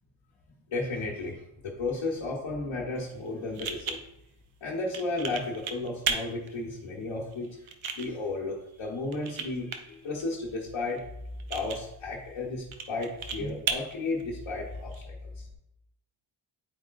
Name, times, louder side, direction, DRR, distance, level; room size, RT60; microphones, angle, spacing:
voice 1, 0.7-4.0 4.6-7.6 7.9-11.0 11.5-15.5, left 2 dB, 80° left, -4 dB, 1.2 m, -33 dB
sound 1, 3.0-15.0, right 6 dB, 80° right, 0.8 m, -38 dB
9.8 x 4.6 x 2.5 m, 0.85 s
cardioid pair, 50°, 46 cm